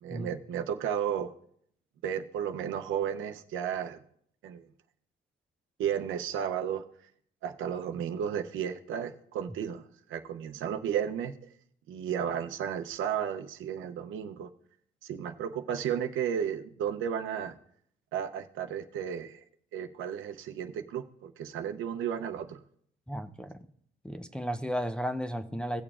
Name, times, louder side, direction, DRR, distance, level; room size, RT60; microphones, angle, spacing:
voice 1, 0.0-1.3 2.0-4.0 4.4-4.7 5.8-6.9 7.4-11.3 11.9-14.5 15.0-17.5 18.1-19.4 19.7-22.6, right 8 dB, 85° right, 7 dB, 0.7 m, -33 dB
voice 2, 23.1-23.5 24.0-25.8, equal, 5° left, 10 dB, 0.6 m, -34 dB
17.5 x 6.9 x 2.4 m, 0.67 s
cardioid pair, 90°, 20 cm